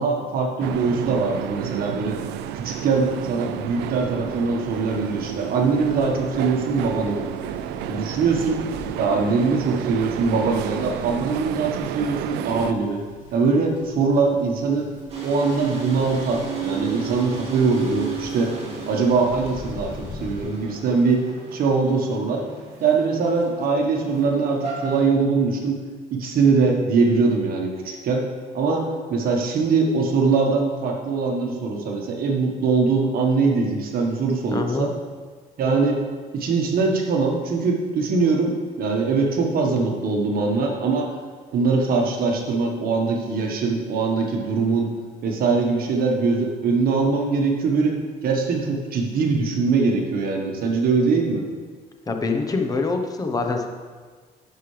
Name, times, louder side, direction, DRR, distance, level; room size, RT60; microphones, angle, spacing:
voice 1, 0.0-2.2 2.5-7.3 7.9-8.6 9.0-13.0 13.3-14.9 15.2-18.5 18.9-21.3 21.5-22.5 22.8-25.8 26.1-28.3 28.5-34.9 35.6-36.1 36.3-41.1 41.5-44.9 45.2-51.4, right 4 dB, 60° right, 1 dB, 1.4 m, -22 dB
sound 1, 0.6-12.7, right 11 dB, 85° right, 0.4 m, -31 dB
sound 2, 4.6-20.4, left 2 dB, 50° left, 2.6 m, -44 dB
sound 3, 15.1-25.1, right 6 dB, 35° right, 2.4 m, -34 dB
voice 2, 34.5-34.9 52.1-53.7, left 3 dB, 20° left, 4 dB, 0.9 m, -24 dB
12.0 x 5.7 x 3.3 m, 1.5 s
cardioid pair, 110°, 17 cm